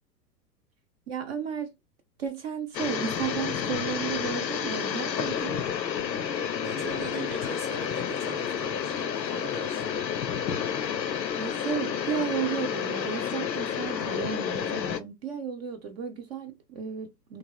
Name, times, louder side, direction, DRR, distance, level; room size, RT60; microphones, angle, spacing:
voice 1, 1.1-1.7 2.2-5.6 11.4-17.4, right 7 dB, 40° right, 0.6 m, -33 dB
sound 1, 2.7-15.0, left 8 dB, 90° left, 0.6 m, -30 dB
voice 2, 6.5-10.1, right 3 dB, ahead, 0.7 m, -41 dB
3.2 x 2.4 x 2.2 m
figure-of-eight pair, 105°, 50 cm